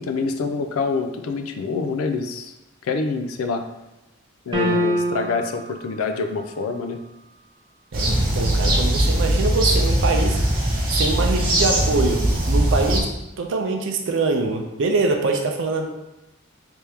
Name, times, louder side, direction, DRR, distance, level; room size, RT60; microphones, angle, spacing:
voice 1, 0.0-2.5 2.8-3.7 4.5-7.0, left 4 dB, 80° left, 6 dB, 0.4 m, -26 dB
sound 1, 4.5-5.6, equal, 20° right, 0.7 m, -23 dB
sound 2, 7.9-13.0, right 1 dB, 45° right, 0.9 m, -20 dB
voice 2, 7.9-10.4 10.9-13.1 13.4-15.9, right 3 dB, 65° right, 3 dB, 0.4 m, -24 dB
3.4 x 2.8 x 3.3 m, 0.97 s
head